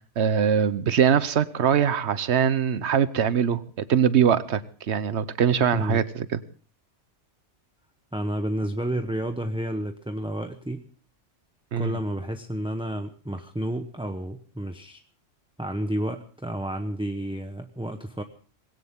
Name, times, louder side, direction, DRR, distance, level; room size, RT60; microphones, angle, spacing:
voice 1, 0.2-3.6 3.9-4.6 4.9-6.4 11.7-11.9, right 8 dB, 70° right, 15 dB, 1.2 m, -22 dB
voice 2, 5.7-6.0 8.1-10.9 11.8-15.0 15.6-18.2, right 1 dB, 5° right, 6 dB, 0.9 m, -30 dB
21.0 x 17.0 x 3.7 m, 0.42 s
omnidirectional pair, 1.2 m